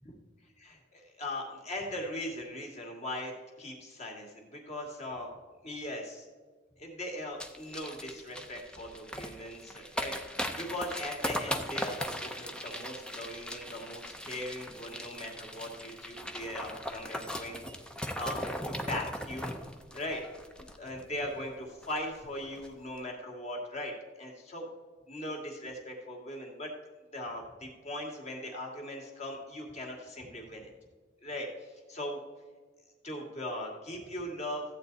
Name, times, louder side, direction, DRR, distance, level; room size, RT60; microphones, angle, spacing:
voice 1, 0.4-5.3 5.6-6.3 6.8-17.6 18.2-19.5 19.9-20.2 20.6-24.7 25.1-26.7 27.1-30.7 31.2-32.2 33.0-34.6, left 1 dB, 35° left, 1 dB, 2.3 m, -39 dB
sound 1, 7.4-21.2 21.5-21.6 21.8-22.2 22.5-22.7, equal, 5° left, 0.7 m, -38 dB
14.5 x 8.6 x 4.1 m, 1.4 s
head